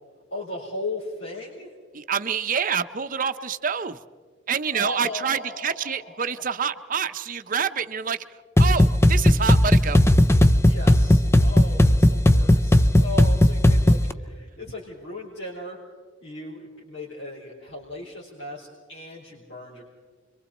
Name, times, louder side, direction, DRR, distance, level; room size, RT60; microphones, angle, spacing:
voice 1, 0.3-1.7 4.7-6.4 10.6-15.8 16.2-19.8, left 1 dB, 65° left, -6 dB, 4.1 m, -37 dB
voice 2, 1.9-4.0 4.5-8.2 8.6-10.0, right 7 dB, 45° right, 9 dB, 0.8 m, -27 dB
sound 1, 8.6-14.1, left 1 dB, 15° left, 0.6 m, -17 dB
30.0 x 23.5 x 4.3 m, 1.6 s
head